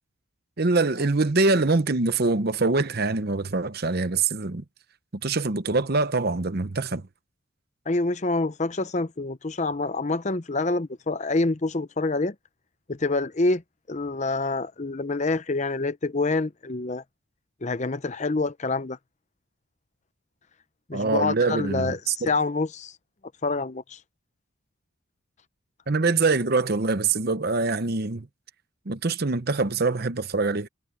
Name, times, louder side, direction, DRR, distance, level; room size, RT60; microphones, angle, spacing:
voice 1, 0.6-4.6 5.2-7.0 20.9-22.3 25.9-28.3 28.9-30.7, right 3 dB, 45° right, 0.9 m, -24 dB
voice 2, 7.9-12.3 12.9-13.6 13.9-17.0 17.6-19.0 20.9-22.9 23.4-24.0, left 3 dB, 35° left, 0.7 m, -26 dB
head